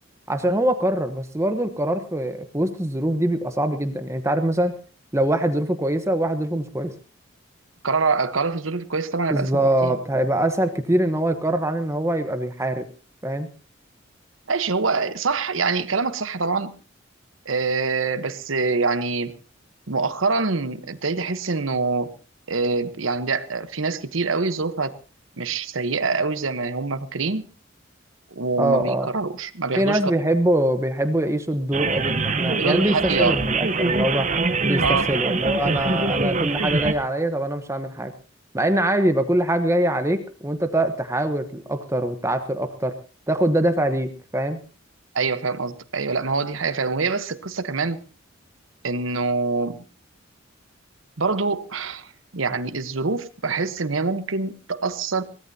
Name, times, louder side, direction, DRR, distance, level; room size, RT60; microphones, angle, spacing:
voice 1, 0.3-4.8 5.1-6.9 9.3-12.9 13.2-13.5 28.6-29.1 29.7-34.3 34.6-38.1 38.5-42.9 43.3-44.6, right 1 dB, 15° right, 8 dB, 1.1 m, -23 dB
voice 2, 7.8-9.9 14.5-16.8 17.4-19.4 19.9-22.1 22.5-25.0 25.4-27.5 28.3-30.0 32.5-33.4 34.8-35.1 45.1-48.0 48.8-49.8 51.2-55.2, right 4 dB, 80° right, 12 dB, 1.1 m, -25 dB
sound 1, 31.7-36.9, right 3 dB, 35° right, 1.0 m, -23 dB
23.0 x 17.5 x 2.8 m, 0.34 s
head